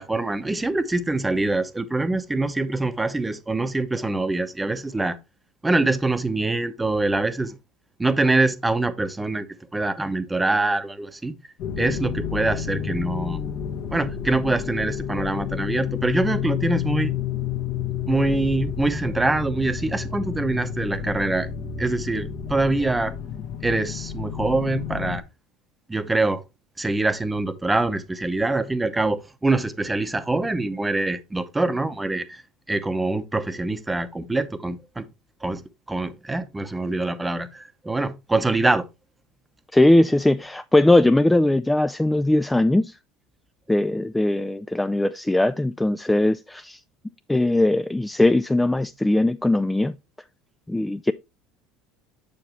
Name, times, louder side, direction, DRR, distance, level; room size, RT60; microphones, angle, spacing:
voice 1, 0.0-5.2 5.6-7.5 8.0-9.5 9.7-11.3 11.8-13.4 13.9-17.1 18.1-21.5 21.8-23.1 23.6-25.2 25.9-26.4 26.8-32.4 32.7-35.1 35.4-35.6 35.9-38.8, right 2 dB, 10° right, 0.8 m, -24 dB
sound 1, 11.6-25.2, left 8 dB, 65° left, 1.3 m, -30 dB
voice 2, 39.7-43.0 43.7-46.8 47.3-50.0 50.7-51.1, left 1 dB, 5° left, 0.3 m, -20 dB
6.9 x 6.9 x 3.0 m
supercardioid pair, 110°, 0 cm